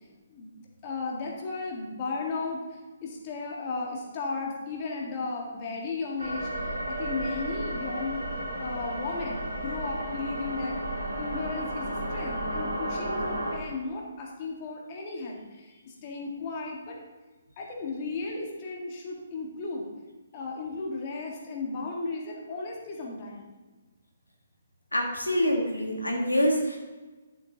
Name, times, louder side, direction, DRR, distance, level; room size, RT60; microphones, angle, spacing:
voice 1, 0.3-6.5 6.9-8.2 8.6-10.8 11.2-17.0 17.6-19.9 20.3-23.5, left 3 dB, 35° left, -1 dB, 1.7 m, -35 dB
sound 1, 6.2-13.6, right 1 dB, 90° right, 2.7 m, -33 dB
voice 2, 24.9-26.8, equal, 85° left, 0 dB, 1.6 m, -25 dB
11.0 x 7.7 x 3.0 m, 1.3 s
figure-of-eight pair, 130°, 0 cm